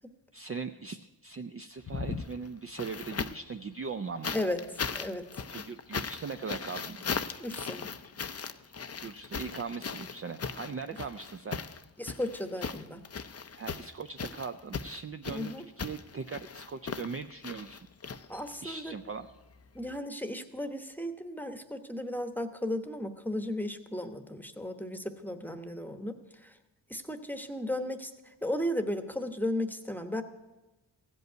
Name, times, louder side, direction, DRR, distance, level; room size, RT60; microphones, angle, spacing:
voice 1, 0.3-4.4 5.5-7.0 9.0-11.6 13.6-17.8 18.6-19.3, right 5 dB, 30° right, 8 dB, 0.4 m, -40 dB
sound 1, 1.8-3.5 4.2-18.7 19.9-20.0, left 5 dB, 35° left, 0.5 m, -38 dB
voice 2, 7.4-7.9 12.0-13.0 15.3-15.6 18.3-19.0 19.7-26.6 26.9-30.2, left 1 dB, 5° left, 8 dB, 1.0 m, -35 dB
15.0 x 5.4 x 9.2 m, 1.1 s
cardioid pair, 65°, 45 cm